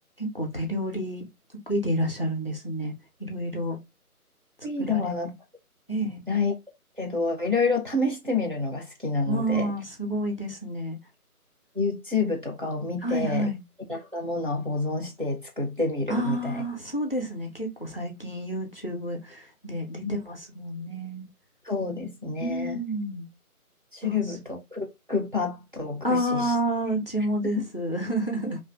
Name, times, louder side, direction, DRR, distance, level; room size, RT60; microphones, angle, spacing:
voice 1, 0.2-1.3 1.7-2.9 3.2-3.8 4.9-5.1 5.9-6.2 9.3-11.0 13.0-13.6 16.1-21.3 22.4-23.3 24.0-24.2 26.0-28.6, right 1 dB, 40° left, 0.4 m, -29 dB
voice 2, 4.6-5.3 6.3-6.5 7.0-9.7 11.7-13.5 13.9-16.6 20.0-20.2 21.6-22.8 23.9-26.5 27.6-27.7, left 3 dB, 35° right, 0.5 m, -28 dB
2.5 x 2.4 x 2.3 m
figure-of-eight pair, 170°, 45 cm